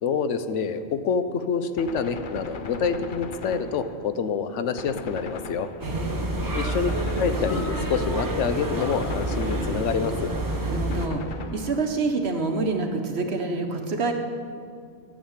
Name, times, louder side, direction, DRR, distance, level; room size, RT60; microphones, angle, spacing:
voice 1, 0.0-5.7 6.5-6.9 7.2-10.3, left 6 dB, 75° left, 10 dB, 1.0 m, -27 dB
Gunshot gunfire, 1.8-4.3 4.8-6.2 6.9-7.9 8.8-10.2 10.9-12.1, left 4 dB, 50° left, 0.7 m, -39 dB
sound 1, 5.8-11.1, right 1 dB, 20° right, 0.9 m, -28 dB
voice 2, 5.8-6.3 10.6-14.1, right 3 dB, 60° right, 4 dB, 1.2 m, -27 dB
12.5 x 7.4 x 7.2 m, 2.3 s
omnidirectional pair, 1.2 m